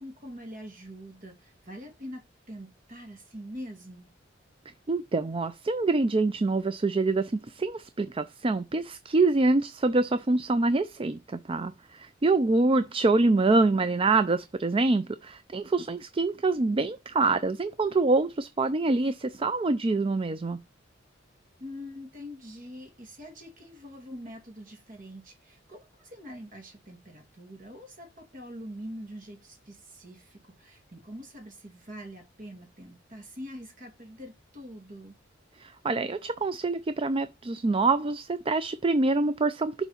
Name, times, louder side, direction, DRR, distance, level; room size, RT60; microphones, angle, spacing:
voice 1, 0.0-4.1 21.6-35.2, equal, 45° right, 2.5 m, -44 dB
voice 2, 4.9-20.6 35.6-39.7, right 3 dB, 30° right, 0.4 m, -25 dB
6.8 x 4.0 x 5.7 m
head